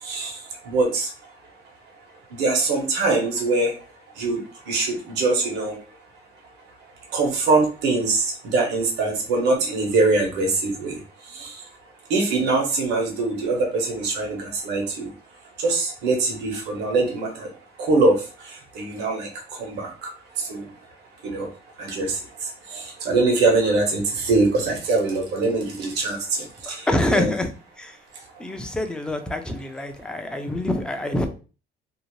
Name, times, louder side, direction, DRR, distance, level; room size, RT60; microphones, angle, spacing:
voice 1, 0.0-1.1 2.3-3.7 4.2-4.4 4.7-5.7 7.1-11.0 11.3-11.6 12.1-15.1 15.6-17.5 17.8-18.2 18.4-19.3 19.6-20.1 20.4-20.6 21.2-21.5 21.8-27.3, right 3 dB, 80° right, 1.0 m, -23 dB
voice 2, 26.7-27.5 27.8-28.0 28.4-31.3, left 1 dB, 5° left, 0.4 m, -26 dB
2.7 x 2.1 x 3.0 m
cardioid pair, 110°, 17 cm